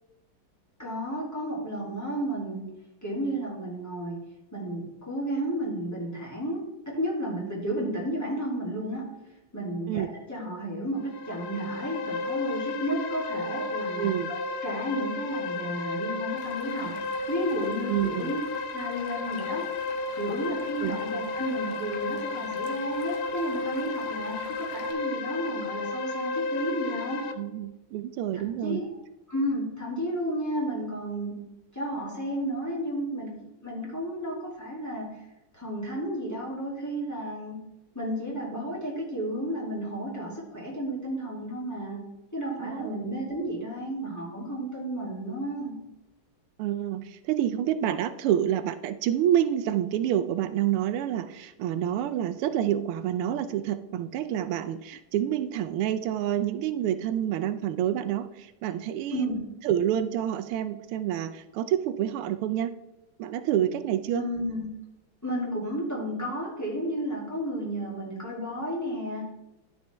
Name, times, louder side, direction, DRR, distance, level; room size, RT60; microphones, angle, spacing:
voice 1, 0.8-2.7 3.0-4.2 4.5-9.2 9.5-18.4 18.7-19.7 20.1-27.3 28.3-28.9 29.3-31.4 31.7-35.2 35.5-37.6 37.9-45.8 59.1-59.4 64.1-64.7 65.2-69.3, equal, 10° left, -5 dB, 2.7 m, -32 dB
sound 1, 11.0-27.3, left 3 dB, 85° left, 1.7 m, -33 dB
voice 2, 14.0-14.3 17.9-18.3 20.8-21.0 27.4-28.8 42.6-42.9 46.6-59.3 59.6-62.7 63.2-64.2, right 11 dB, 85° right, 11 dB, 1.5 m, -28 dB
Stream, 16.4-24.9, left 4 dB, 55° left, 1.7 m, -49 dB
12.5 x 5.5 x 3.4 m, 0.97 s
omnidirectional pair, 2.4 m